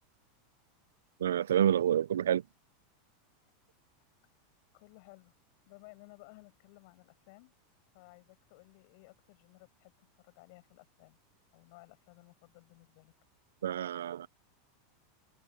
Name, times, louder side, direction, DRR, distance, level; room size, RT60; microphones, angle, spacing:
voice 1, 1.2-2.4 13.6-14.3, right 10 dB, 90° right, 0.4 m, -28 dB
voice 2, 4.7-5.3 5.7-7.5 7.9-9.9 10.2-11.2 11.5-13.1, left 28 dB, 60° left, 7.7 m, -57 dB
hypercardioid pair, 115°, 0 cm